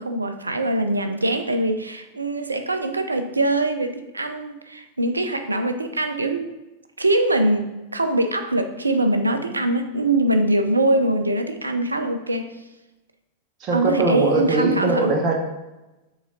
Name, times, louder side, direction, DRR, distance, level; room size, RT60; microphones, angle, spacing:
voice 1, 0.0-6.5 7.0-12.5 13.7-15.2, right 1 dB, 80° right, 8 dB, 0.5 m, -23 dB
voice 2, 13.6-15.3, right 3 dB, 35° right, 1 dB, 1.2 m, -21 dB
6.9 x 3.8 x 3.8 m, 1.0 s
figure-of-eight pair, 90°, 0 cm